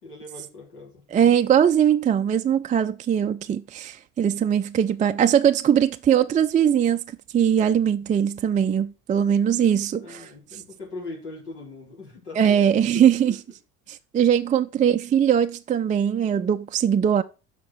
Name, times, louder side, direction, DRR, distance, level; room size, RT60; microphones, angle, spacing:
voice 1, 0.0-1.4 9.9-12.6 13.3-13.4, left 3 dB, 80° left, 4.1 m, -40 dB
voice 2, 1.1-7.0 7.3-10.2 12.4-13.3 14.1-17.2, right 9 dB, 20° right, 0.4 m, -20 dB
6.5 x 5.2 x 6.3 m
hypercardioid pair, 70°, 46 cm